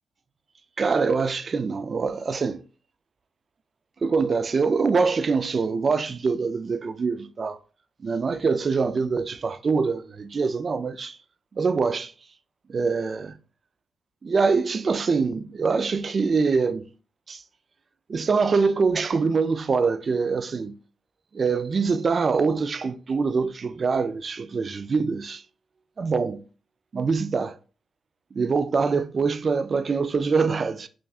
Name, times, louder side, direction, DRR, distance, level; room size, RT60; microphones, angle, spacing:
voice 1, 0.8-2.6 4.0-7.6 8.0-11.2 11.6-12.1 12.7-13.3 14.2-16.9 17.3-17.4 18.1-20.8 21.3-25.4 26.0-26.4 26.9-27.5 28.3-30.9, right 4 dB, 45° right, 0.3 m, -24 dB
6.1 x 2.3 x 2.4 m
cardioid pair, 65°, 0 cm